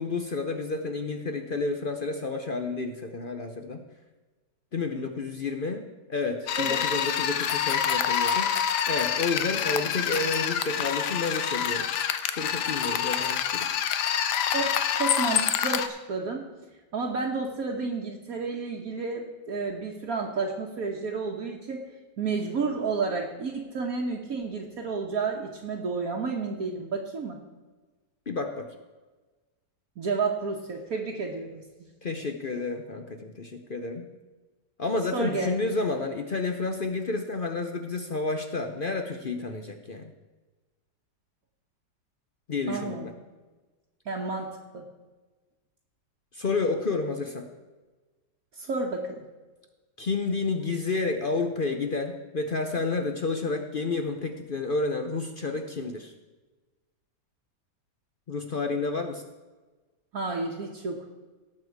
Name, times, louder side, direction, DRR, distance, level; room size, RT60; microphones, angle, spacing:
voice 1, 0.0-3.8 4.7-8.5 8.9-11.9 12.3-13.7 28.3-28.7 32.0-34.1 34.8-40.1 42.5-43.1 46.3-47.5 50.0-56.1 58.3-59.2, left 3 dB, 50° left, 5 dB, 0.6 m, -30 dB
sound 1, 6.5-15.9, left 8 dB, 75° left, 1.3 m, -27 dB
voice 2, 6.6-6.9 14.5-16.5 16.9-21.8 22.2-27.4 30.0-31.6 35.1-35.5 42.7-43.1 44.0-44.8 48.5-49.2 60.1-61.1, right 4 dB, 60° right, -1 dB, 1.5 m, -31 dB
17.5 x 6.8 x 4.7 m, 1.3 s
omnidirectional pair, 1.9 m